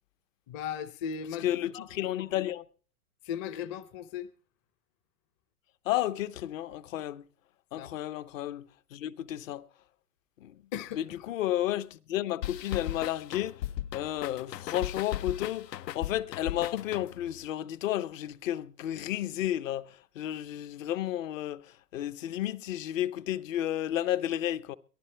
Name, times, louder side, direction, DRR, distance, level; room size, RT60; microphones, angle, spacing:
voice 1, 0.5-2.1 3.2-4.3 7.8-7.9 10.7-11.3, left 8 dB, 25° left, 0.7 m, -37 dB
voice 2, 1.4-2.6 5.9-7.2 7.7-8.6 8.9-9.6 10.4-10.5 11.0-13.5 13.9-19.9 20.2-21.6 21.9-24.8, left 13 dB, 50° left, 0.9 m, -32 dB
sound 1, 12.4-17.4, left 12 dB, 80° left, 0.8 m, -37 dB
22.5 x 14.5 x 3.4 m
hypercardioid pair, 145°, 49 cm